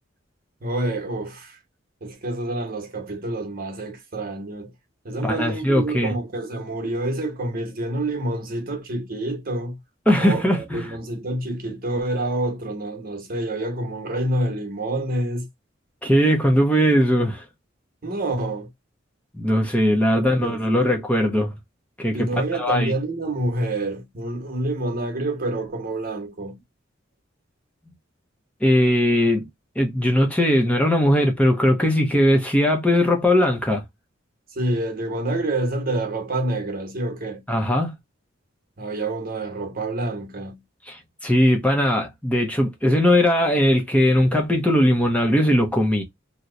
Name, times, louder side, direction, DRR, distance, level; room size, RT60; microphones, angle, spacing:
voice 1, 0.6-1.6 2.0-4.7 5.0-9.8 10.2-15.5 18.0-18.7 20.2-21.0 22.1-26.6 34.5-37.4 38.8-40.6, right 1 dB, 50° right, 1.0 m, -27 dB
voice 2, 5.2-6.1 10.1-11.0 16.0-17.4 19.3-21.5 22.0-22.9 28.6-29.5 29.8-33.8 37.5-37.9 40.9-46.0, equal, 5° left, 0.6 m, -19 dB
2.9 x 2.1 x 3.7 m
head